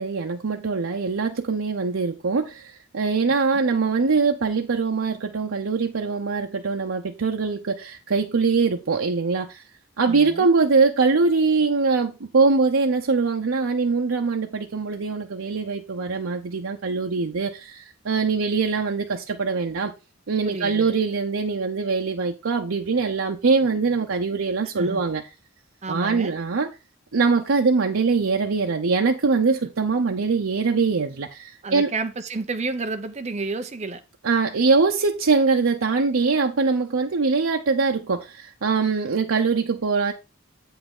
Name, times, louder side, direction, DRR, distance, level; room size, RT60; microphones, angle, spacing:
voice 1, 0.0-9.6 10.0-19.9 20.3-25.2 25.9-26.7 27.1-31.9 34.2-40.1, right 4 dB, 85° right, 0.7 m, -22 dB
voice 2, 10.0-10.5 20.4-20.9 24.8-25.0 25.8-26.4 31.6-34.0, right 3 dB, 35° right, 0.7 m, -31 dB
7.9 x 5.6 x 3.7 m
head